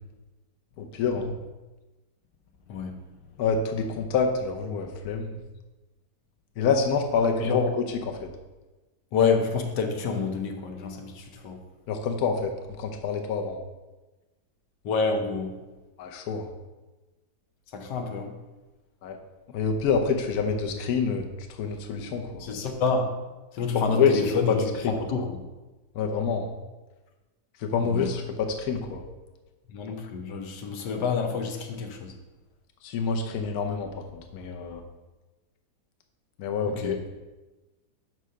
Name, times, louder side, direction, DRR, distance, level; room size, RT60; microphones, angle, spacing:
voice 1, 0.8-1.3 3.4-5.3 6.6-8.3 11.9-12.5 12.8-13.6 16.0-16.5 19.0-19.2 19.5-21.3 21.6-22.4 23.7-24.9 25.9-26.5 27.6-29.0 32.8-34.8 36.4-37.0, left 5 dB, 65° left, 3 dB, 1.2 m, -27 dB
voice 2, 9.1-11.6 14.8-15.5 17.7-18.3 22.4-23.1 23.5-24.5 24.9-25.4 27.9-28.1 29.7-32.1 36.7-37.0, left 5 dB, 85° left, 4 dB, 1.5 m, -28 dB
5.5 x 4.7 x 6.3 m, 1.1 s
omnidirectional pair, 1.8 m